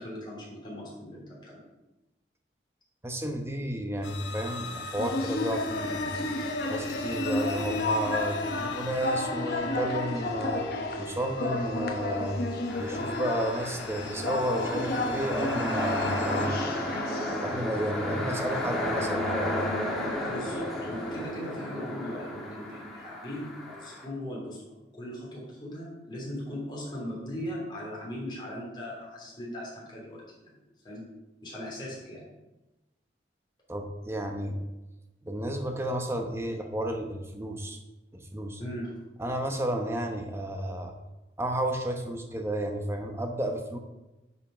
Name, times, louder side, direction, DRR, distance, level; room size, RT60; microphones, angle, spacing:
voice 1, 0.0-1.6 20.3-24.6 24.9-30.5 30.8-31.0 31.4-32.2 38.6-39.0, equal, 25° left, -5 dB, 3.3 m, -39 dB
voice 2, 3.0-6.2 6.7-10.7 11.0-12.4 12.8-16.9 17.4-19.6 33.7-34.6 35.2-37.8 38.1-38.6 39.2-41.0 41.4-43.8, right 1 dB, 15° right, 4 dB, 1.0 m, -32 dB
sound 1, 4.0-16.5, left 4 dB, 85° left, 1.1 m, -41 dB
sound 2, 5.0-21.2, left 2 dB, 55° left, 1.1 m, -33 dB
sound 3, 12.7-24.0, left 1 dB, ahead, 1.6 m, -33 dB
10.5 x 5.5 x 5.0 m, 1.0 s
head